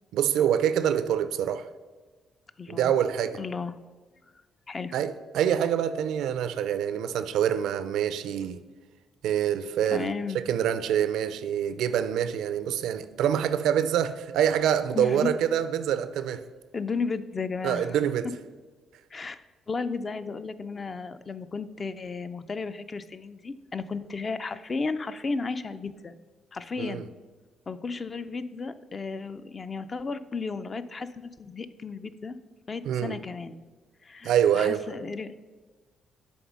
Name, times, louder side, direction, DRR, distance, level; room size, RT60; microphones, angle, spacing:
voice 1, 0.1-1.7 2.7-3.4 4.9-8.6 9.2-10.1 10.3-16.4 17.6-18.3 26.8-27.0 32.9-33.2 34.2-34.8, right 9 dB, 85° right, 0.4 m, -26 dB
voice 2, 2.6-2.9 3.4-3.8 4.7-4.9 9.9-10.4 14.9-15.3 16.7-18.0 19.1-26.1 26.5-27.0 27.7-32.4 32.7-33.6 34.0-35.3, left 4 dB, 35° left, 0.4 m, -34 dB
7.0 x 3.6 x 6.1 m
cardioid pair, 90°, 0 cm